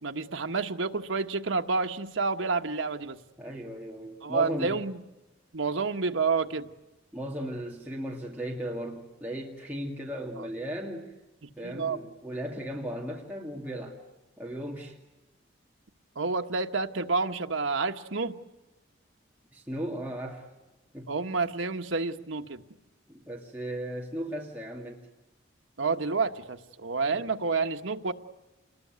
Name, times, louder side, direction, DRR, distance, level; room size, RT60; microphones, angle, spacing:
voice 1, 0.0-3.2 4.2-5.0 5.5-6.7 10.4-10.5 11.4-12.0 16.1-18.3 21.1-22.6 25.8-28.1, right 4 dB, 85° right, 6 dB, 1.3 m, -29 dB
voice 2, 3.4-4.8 7.1-11.1 11.6-14.0 14.4-15.0 19.5-20.5 20.9-21.1 23.1-25.0 27.1-27.3, equal, 10° right, -3 dB, 2.2 m, -36 dB
28.0 x 21.0 x 9.4 m, 1.0 s
head